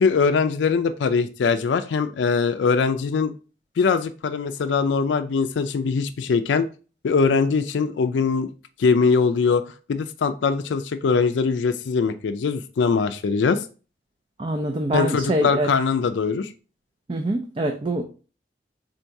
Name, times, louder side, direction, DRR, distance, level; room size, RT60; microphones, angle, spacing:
voice 1, 0.0-3.3 3.8-6.7 7.0-8.5 8.8-9.6 9.9-13.6 14.9-16.5, left 5 dB, 85° left, 10 dB, 0.4 m, -22 dB
voice 2, 14.4-15.7 17.1-18.0, right 1 dB, 30° right, 4 dB, 0.4 m, -24 dB
3.8 x 2.6 x 4.5 m, 0.35 s
head